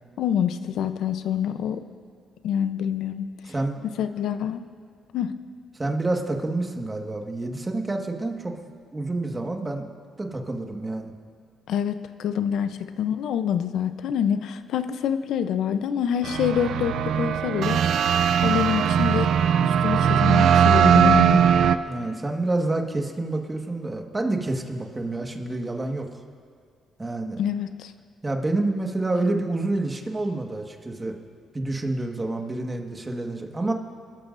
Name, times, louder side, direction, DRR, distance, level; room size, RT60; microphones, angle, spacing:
voice 1, 0.2-1.8 2.4-3.3 4.0-4.6 5.1-5.3 11.7-17.8 18.4-19.3 19.6-21.5 27.4-27.9, left 9 dB, 80° left, 10 dB, 0.7 m, -26 dB
voice 2, 3.4-3.8 5.7-8.6 8.9-9.9 10.2-11.1 21.9-26.1 27.0-27.4 28.2-31.1 31.5-33.7, right 2 dB, 20° right, 2 dB, 1.6 m, -28 dB
sound 1, 16.2-21.8, right 8 dB, 75° right, 0.5 m, -19 dB
27.0 x 13.0 x 2.6 m, 2.2 s
cardioid pair, 90°, 0 cm